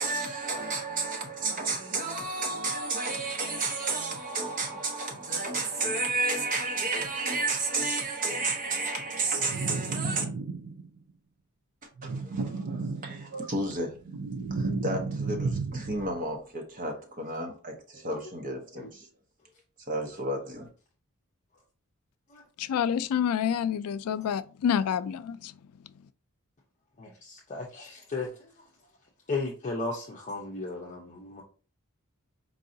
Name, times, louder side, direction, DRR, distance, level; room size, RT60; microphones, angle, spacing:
voice 1, 0.0-10.2 12.0-19.1 19.9-20.7, right 3 dB, 40° right, 0.9 m, -32 dB
sound 1, 9.4-11.0 12.0-13.4 13.8-16.2, right 3 dB, 80° right, 0.5 m, -33 dB
voice 2, 22.6-25.5, left 8 dB, 85° left, 0.3 m, -28 dB
voice 3, 27.0-28.5 29.3-31.4, left 3 dB, 35° left, 0.7 m, -35 dB
4.7 x 2.7 x 2.6 m
head